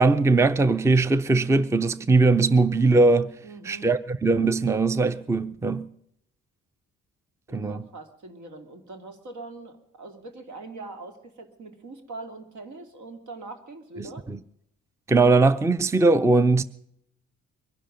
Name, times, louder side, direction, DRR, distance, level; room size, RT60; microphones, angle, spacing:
voice 1, 0.0-3.3 3.6-5.9 7.5-7.9 14.0-14.4 15.1-16.6, right 3 dB, 10° right, 0.5 m, -20 dB
voice 2, 3.4-3.9 7.5-14.2, right 3 dB, 70° right, 2.6 m, -42 dB
22.5 x 11.5 x 5.2 m
cardioid pair, 90°, 30 cm